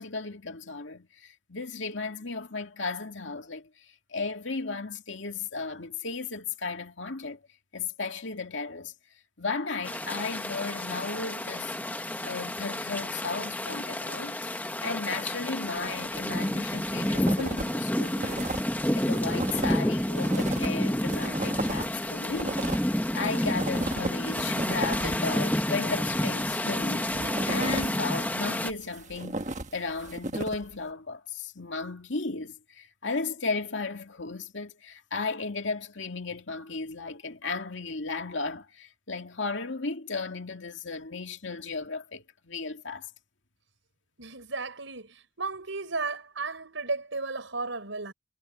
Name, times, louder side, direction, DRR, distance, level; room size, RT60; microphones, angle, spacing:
voice 1, 0.0-3.7 4.1-7.4 7.7-8.9 9.4-22.9 23.1-29.4 29.7-43.1, left 4 dB, 70° left, 2.3 m, -35 dB
sound 1, 9.8-28.7, left 1 dB, 10° left, 1.2 m, -30 dB
sound 2, 16.4-17.7 18.0-25.3 26.1-28.0 28.6-30.8, right 2 dB, 35° right, 1.3 m, -35 dB
voice 2, 44.2-45.1 45.4-48.1, right 3 dB, 80° right, 4.5 m, -34 dB
head